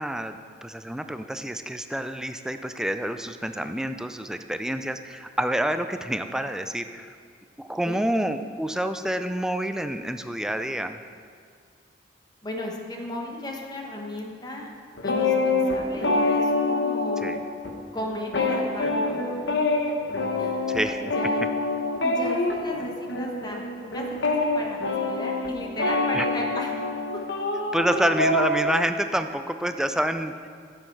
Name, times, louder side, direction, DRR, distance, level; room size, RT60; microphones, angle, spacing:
voice 1, 0.0-7.1 7.6-11.0 17.2-17.4 20.7-21.0 26.1-26.3 27.7-30.5, right 1 dB, 5° right, 8 dB, 0.3 m, -28 dB
voice 2, 12.4-14.7 15.0-17.4 17.9-19.9 20.4-20.7 21.0-21.4 22.0-26.7, left 1 dB, 25° left, 0 dB, 1.1 m, -35 dB
sound 1, 15.0-17.7 18.0-28.6, left 2 dB, 90° left, 1.0 m, -26 dB
10.5 x 7.7 x 4.6 m, 2.1 s
head